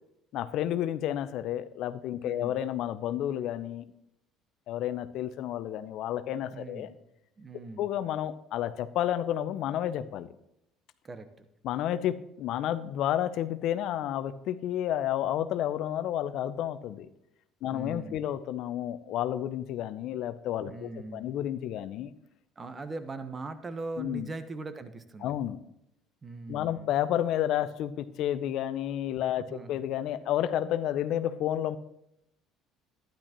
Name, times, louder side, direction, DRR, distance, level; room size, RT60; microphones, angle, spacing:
voice 1, 0.3-3.8 4.7-6.9 7.8-10.3 11.6-17.1 17.6-22.1 24.0-24.3 25.2-25.6 26.5-31.8, left 11 dB, 65° left, 13 dB, 0.6 m, -31 dB
voice 2, 2.2-2.6 6.5-6.9 7.4-7.8 11.0-11.5 17.7-18.3 20.7-21.4 22.6-25.3 26.2-26.9 29.5-29.9, right 3 dB, 30° right, 10 dB, 1.1 m, -40 dB
12.0 x 10.5 x 3.0 m, 0.82 s
hypercardioid pair, 70°, 0 cm